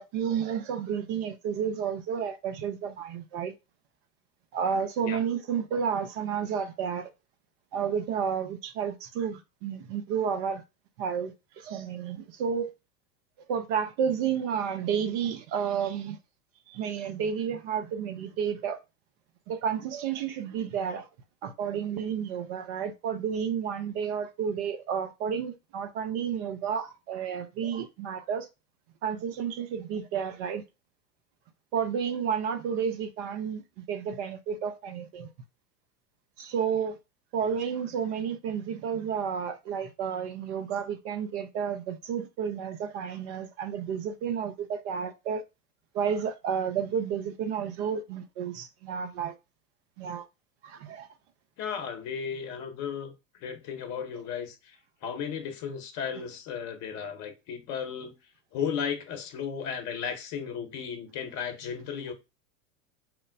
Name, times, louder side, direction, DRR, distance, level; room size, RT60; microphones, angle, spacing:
voice 1, 0.0-3.5 4.5-7.1 7.7-10.6 11.0-12.7 13.5-16.2 16.7-18.8 19.5-21.1 21.4-28.5 29.0-30.6 31.7-35.3 36.4-37.0 37.3-45.4 45.9-49.3 50.0-50.2 50.6-51.1, right 7 dB, 45° right, 0.6 m, -31 dB
voice 2, 51.6-53.1 53.4-54.8 55.0-58.2 58.5-62.1, left 7 dB, 40° left, 0.9 m, -35 dB
4.4 x 2.0 x 2.6 m
figure-of-eight pair, 85°, 46 cm